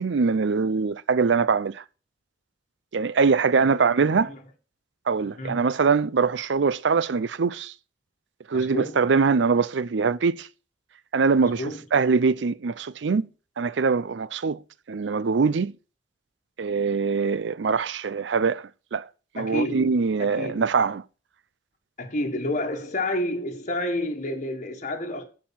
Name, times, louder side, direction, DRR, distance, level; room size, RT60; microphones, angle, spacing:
voice 1, 0.0-1.8 2.9-4.3 5.1-7.7 8.5-10.5 11.1-11.6 11.9-13.3 13.6-14.6 14.9-15.7 16.6-19.0 19.3-21.0, right 5 dB, 70° right, 0.5 m, -23 dB
voice 2, 3.5-4.0 4.3-4.4 5.4-5.6 8.5-9.0 11.4-11.8 19.4-20.6 22.0-25.2, left 1 dB, 40° left, 1.4 m, -30 dB
11.5 x 4.9 x 5.8 m
head